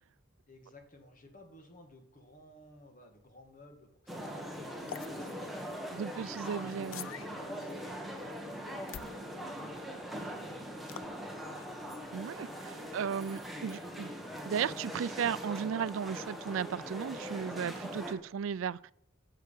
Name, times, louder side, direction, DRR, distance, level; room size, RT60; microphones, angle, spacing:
voice 1, 0.5-6.0 6.3-6.9 7.2-11.8, left 1 dB, 40° left, 1.8 m, -57 dB
sound 1, 4.1-18.1, equal, ahead, 1.3 m, -41 dB
sound 2, 4.9-5.1 6.9-7.3 8.9-9.1 10.9-11.1, left 9 dB, 75° left, 0.4 m, -43 dB
voice 2, 5.9-7.1 12.1-14.1 14.5-18.9, right 7 dB, 75° right, 0.3 m, -35 dB
8.9 x 6.6 x 7.2 m
head